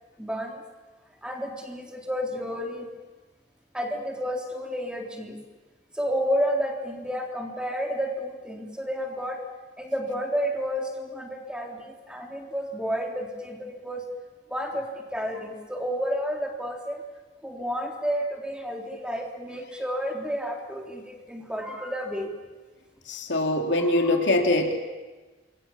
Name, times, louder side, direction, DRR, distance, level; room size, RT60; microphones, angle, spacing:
voice 1, 0.2-0.6 1.2-2.9 3.7-5.4 5.9-9.4 9.8-14.0 14.5-17.0 17.4-22.3 23.8-24.1, equal, 5° right, 1 dB, 3.5 m, -31 dB
voice 2, 23.1-24.7, left 2 dB, 85° left, 2 dB, 3.0 m, -23 dB
28.0 x 24.0 x 7.3 m, 1.3 s
head